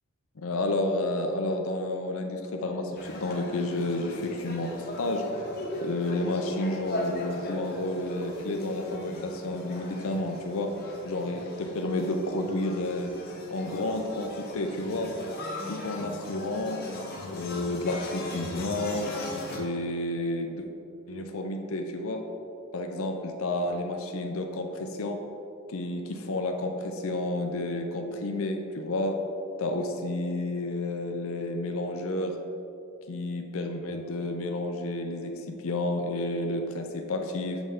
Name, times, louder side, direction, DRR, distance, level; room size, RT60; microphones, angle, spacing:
voice 1, 0.4-5.2 5.8-13.1 13.5-15.1 15.7-16.8 17.3-19.1 19.5-20.7 21.1-22.2 22.7-25.2 25.7-29.2 29.6-32.4 33.1-37.6, left 2 dB, 70° left, 4 dB, 0.6 m, -31 dB
sound 1, 2.9-19.6, left 1 dB, 45° left, 1.0 m, -38 dB
7.1 x 5.4 x 3.7 m, 2.6 s
head